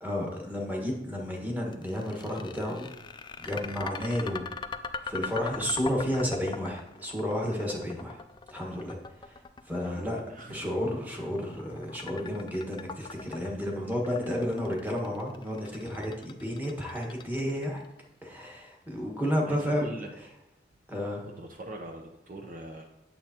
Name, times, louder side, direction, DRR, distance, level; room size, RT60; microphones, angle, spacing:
voice 1, 0.0-2.8 3.4-4.4 5.0-8.2 8.5-9.0 9.7-10.2 10.5-17.8 18.2-19.9 20.9-21.2, equal, 10° right, -1 dB, 1.5 m, -31 dB
sound 1, 1.7-17.9, left 5 dB, 25° left, 0.3 m, -41 dB
voice 2, 9.8-10.6 19.5-20.1 21.4-22.9, right 1 dB, 50° right, 3 dB, 0.7 m, -42 dB
8.7 x 7.3 x 2.9 m, 0.87 s
head